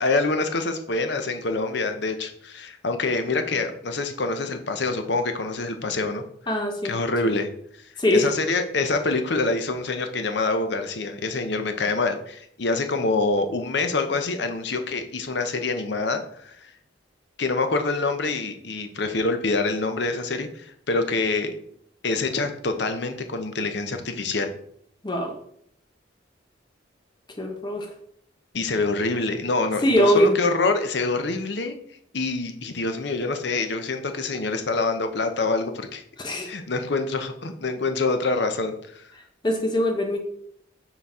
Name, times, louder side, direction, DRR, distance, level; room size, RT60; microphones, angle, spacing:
voice 1, 0.0-6.2 6.8-7.5 8.1-16.7 17.4-21.5 22.0-24.5 28.5-31.7 32.1-36.0 36.5-39.0, left 3 dB, 60° left, 7 dB, 0.7 m, -26 dB
voice 2, 6.5-7.0 7.2-7.3 8.0-8.3 25.0-25.3 27.4-27.9 29.8-30.4 36.2-36.5 39.4-40.2, left 1 dB, 20° left, 3 dB, 0.8 m, -22 dB
5.8 x 4.0 x 4.2 m, 0.68 s
head